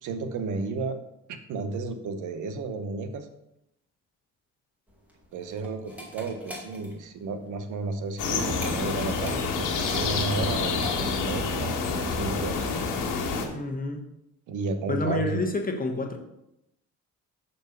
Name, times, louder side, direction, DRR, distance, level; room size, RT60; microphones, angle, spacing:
voice 1, 0.0-1.0 1.3-3.3 5.3-12.7 14.5-15.4, right 3 dB, 80° right, 8 dB, 0.9 m, -33 dB
sound 1, 4.9-11.3, left 1 dB, 5° right, 2.2 m, -43 dB
sound 2, 8.2-13.5, left 4 dB, 85° left, 1.4 m, -28 dB
voice 2, 13.5-14.0 14.9-16.2, left 2 dB, 30° left, 3 dB, 1.3 m, -28 dB
6.5 x 4.4 x 6.6 m, 0.83 s
cardioid pair, 90°, 30 cm